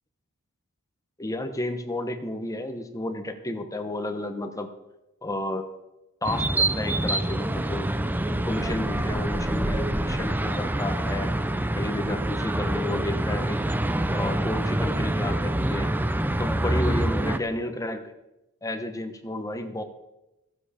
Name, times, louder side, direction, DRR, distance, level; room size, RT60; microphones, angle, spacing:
voice 1, 1.2-4.7 5.2-5.7 6.2-7.9 8.4-11.3 11.7-13.6 14.1-15.9 16.4-18.1 18.6-19.8, left 1 dB, 15° left, 7 dB, 0.9 m, -31 dB
sound 1, 6.2-17.4, right 1 dB, 10° right, 0.4 m, -26 dB
15.5 x 7.7 x 5.0 m, 0.96 s
head